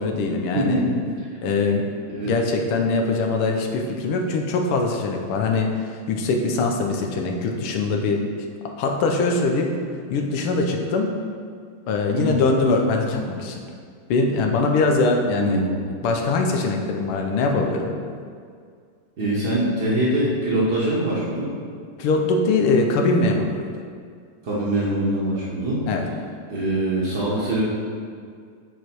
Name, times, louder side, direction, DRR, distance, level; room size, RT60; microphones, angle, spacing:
voice 1, 0.0-0.8 1.4-1.8 2.2-8.2 8.8-9.7 10.1-11.1 11.9-13.6 14.1-15.6 16.0-17.9 22.0-23.7 25.9-26.1, left 3 dB, 85° left, 2 dB, 1.7 m, -22 dB
voice 2, 0.5-1.3 2.1-2.3 12.1-12.4 15.4-15.7 19.2-21.5 24.4-25.8 26.5-27.6, right 1 dB, 50° right, -7 dB, 1.8 m, -23 dB
9.2 x 4.9 x 4.6 m, 2.1 s
omnidirectional pair, 2.4 m